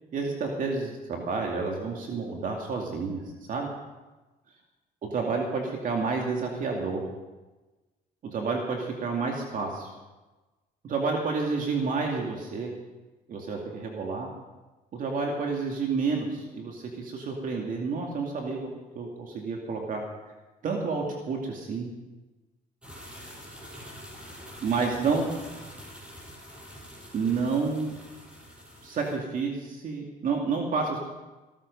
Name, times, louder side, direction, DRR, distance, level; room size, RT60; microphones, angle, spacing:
voice 1, 0.1-3.2 3.5-3.7 5.1-7.0 8.3-9.9 10.8-12.7 13.3-14.3 14.9-20.0 20.6-21.9 24.6-25.3 27.1-27.9 28.8-31.0, right 4 dB, 50° right, 0 dB, 2.4 m, -29 dB
sound 1, 22.8-29.2, equal, 5° right, 5.7 m, -46 dB
16.0 x 13.5 x 5.4 m, 1.2 s
cardioid pair, 110°, 17 cm